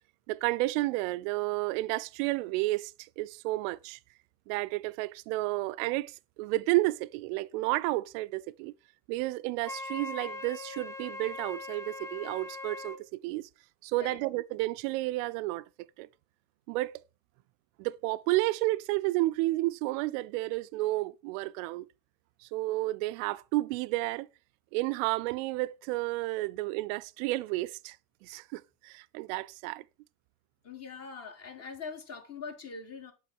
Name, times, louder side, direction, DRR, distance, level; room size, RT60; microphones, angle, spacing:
voice 1, 0.3-4.0 4.5-8.7 9.1-13.5 13.8-15.6 16.0-16.1 16.7-17.0 17.8-21.9 22.4-24.3 24.7-28.0 28.2-29.8, right 19 dB, 55° right, 0.5 m, -31 dB
Wind instrument woodwind instrument, 9.6-13.0, left 3 dB, 5° left, 0.7 m, -41 dB
voice 2, 30.6-33.1, left 5 dB, 30° left, 1.6 m, -42 dB
7.7 x 3.7 x 4.6 m
hypercardioid pair, 80°, 49 cm